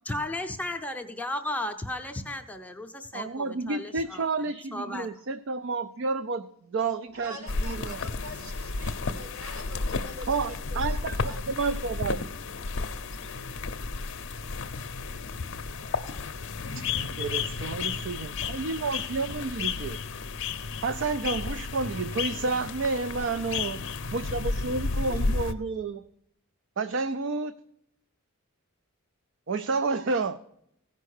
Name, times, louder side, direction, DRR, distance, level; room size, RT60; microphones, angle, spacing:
voice 1, 0.1-5.1, left 1 dB, 5° left, 4 dB, 0.6 m, -35 dB
voice 2, 3.1-7.4 7.6-8.0 10.3-12.2 16.8-16.9 17.1-20.0 20.8-23.8 24.1-26.0 26.8-27.5 29.5-30.4, right 4 dB, 55° right, 12 dB, 0.4 m, -30 dB
voice 3, 7.1-11.5, equal, 75° right, 4 dB, 2.6 m, -45 dB
sound 1, 7.5-25.5, left 4 dB, 55° left, 0.6 m, -32 dB
16.0 x 5.4 x 6.5 m, 0.75 s
head